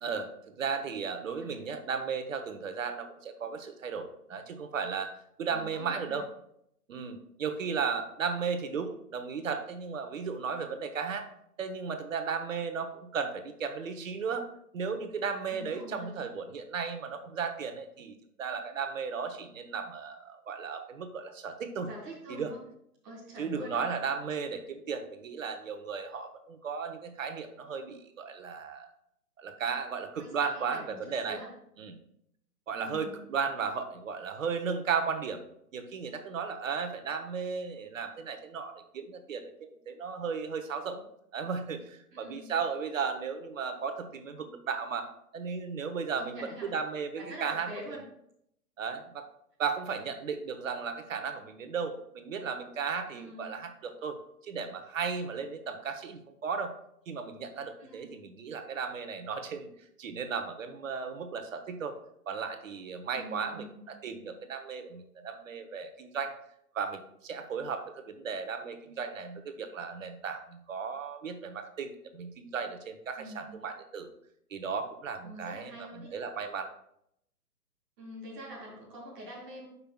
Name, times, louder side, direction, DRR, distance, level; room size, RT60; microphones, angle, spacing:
voice 1, 0.0-5.1 5.4-6.2 6.9-11.3 11.6-14.5 14.7-21.9 22.3-22.5 23.4-28.9 29.4-31.4 31.8-32.0 32.7-35.4 35.7-41.0 41.3-48.0 48.8-49.3 49.6-54.2 54.4-56.7 57.1-61.9 62.3-66.3 66.7-74.1 74.5-76.7, right 5 dB, 55° right, 7 dB, 1.1 m, -35 dB
voice 2, 5.5-6.2 15.5-16.2 21.9-22.6 23.0-23.8 30.2-31.5 32.7-33.2 42.1-42.5 46.2-46.7 47.2-48.0 53.1-53.5 57.8-58.2 63.2-63.8 73.2-73.5 75.2-76.1 78.0-79.7, equal, 5° right, -6 dB, 0.5 m, -45 dB
11.0 x 5.6 x 2.3 m, 0.73 s
figure-of-eight pair, 135°, 47 cm